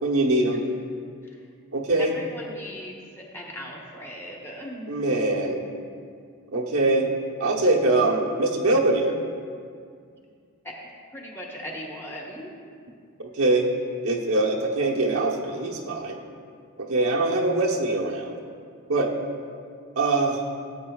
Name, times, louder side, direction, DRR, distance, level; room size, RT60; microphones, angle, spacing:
voice 1, 0.0-0.6 1.7-2.1 4.9-5.6 6.5-7.1 7.4-9.2 13.2-13.7 14.0-16.2 16.8-18.3 18.9-19.1 20.0-20.4, right 2 dB, 80° right, -1 dB, 1.0 m, -23 dB
voice 2, 2.0-5.0 10.6-10.9 11.1-12.5, equal, 10° left, -3 dB, 1.3 m, -38 dB
13.5 x 8.7 x 2.4 m, 2.2 s
head